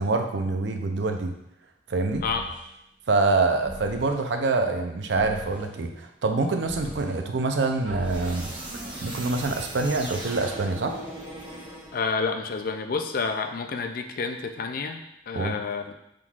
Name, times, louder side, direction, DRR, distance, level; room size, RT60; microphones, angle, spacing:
voice 1, 0.0-1.3 1.9-2.2 3.1-8.5 9.0-11.0 15.3-15.6, right 3 dB, 70° right, 5 dB, 0.5 m, -25 dB
sound 1, 2.1-2.7 3.6-4.2 5.1-5.7 6.6-7.2 7.8-12.2, right 1 dB, 30° right, 1.0 m, -38 dB
voice 2, 11.9-15.9, left 4 dB, 50° left, 5 dB, 0.4 m, -29 dB
6.0 x 3.7 x 2.4 m, 0.81 s
head